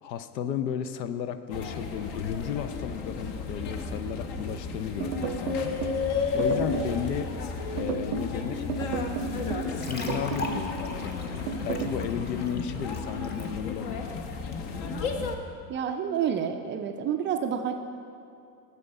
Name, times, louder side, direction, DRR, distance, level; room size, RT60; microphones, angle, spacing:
voice 1, 0.0-5.8 6.3-7.3 7.7-8.6 9.7-14.1, left 8 dB, 80° left, 11 dB, 0.7 m, -34 dB
sound 1, 1.5-15.3, left 5 dB, 55° left, 1.0 m, -33 dB
sound 2, 5.0-6.0 6.4-7.0 7.8-8.3 8.7-9.7 10.1-10.6 11.5-12.0, right 7 dB, 70° right, 0.6 m, -32 dB
sound 3, 9.6-13.4, left 3 dB, 20° left, 1.0 m, -39 dB
voice 2, 15.7-17.7, right 8 dB, 25° right, 5 dB, 0.3 m, -29 dB
9.5 x 7.0 x 4.7 m, 2.5 s
hypercardioid pair, 85°, 50 cm